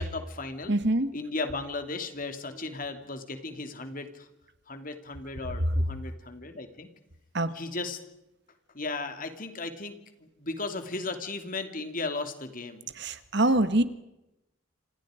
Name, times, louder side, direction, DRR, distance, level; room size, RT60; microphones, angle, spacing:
voice 1, 0.0-0.7 1.1-4.3 4.7-6.9 7.5-8.0 8.7-12.9, left 3 dB, 40° left, 7 dB, 2.8 m, -36 dB
voice 2, 0.7-1.1 7.3-7.5 12.9-13.8, right 1 dB, 55° right, 12 dB, 1.6 m, -24 dB
28.0 x 27.5 x 5.1 m, 0.90 s
head